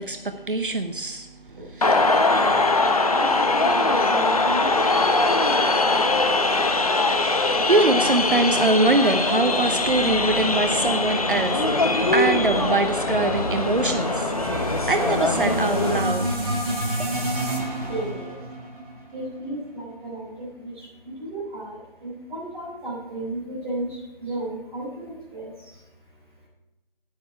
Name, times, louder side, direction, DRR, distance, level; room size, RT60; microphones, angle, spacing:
voice 1, 0.0-2.1 7.3-16.5 17.0-17.1, right 2 dB, 60° right, 7 dB, 0.9 m, -24 dB
sound 1, 1.8-16.0, left 2 dB, 40° left, 0.9 m, -22 dB
voice 2, 3.5-4.8 17.9-18.4 19.1-25.5, right 1 dB, 10° right, -9 dB, 3.1 m, -33 dB
sound 2, 9.8-18.1, left 1 dB, 55° left, 4.6 m, -39 dB
sound 3, 11.3-19.6, right 1 dB, 35° right, 2.5 m, -30 dB
12.0 x 9.5 x 4.7 m, 0.98 s
figure-of-eight pair, 165°, 29 cm